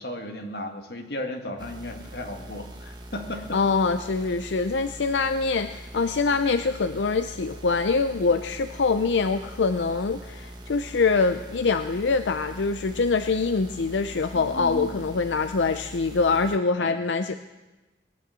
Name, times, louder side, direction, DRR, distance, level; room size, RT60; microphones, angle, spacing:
voice 1, 0.0-3.6 14.3-15.0 16.8-17.0, left 1 dB, 65° left, 4 dB, 1.8 m, -35 dB
sound 1, 1.6-16.6, right 1 dB, 25° right, 1.4 m, -42 dB
voice 2, 3.5-17.4, left 4 dB, 90° left, 9 dB, 0.6 m, -24 dB
19.5 x 9.5 x 7.6 m, 1.1 s
head